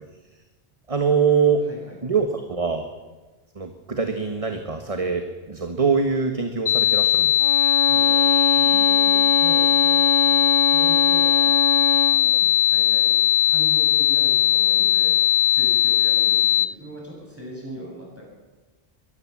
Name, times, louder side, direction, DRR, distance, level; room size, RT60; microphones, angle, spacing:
voice 1, 0.9-1.6 2.0-2.8 3.6-7.4, right 5 dB, 30° right, 5 dB, 1.5 m, -23 dB
voice 2, 1.6-2.0 7.9-8.2 8.5-13.1 13.4-15.2 15.5-18.2, equal, 10° right, -3 dB, 7.9 m, -40 dB
sound 1, 6.7-16.7, left 12 dB, 50° left, 1.0 m, -18 dB
Bowed string instrument, 7.4-12.2, equal, 50° right, 1.0 m, -25 dB
22.5 x 16.0 x 7.4 m, 1.2 s
omnidirectional pair, 1.1 m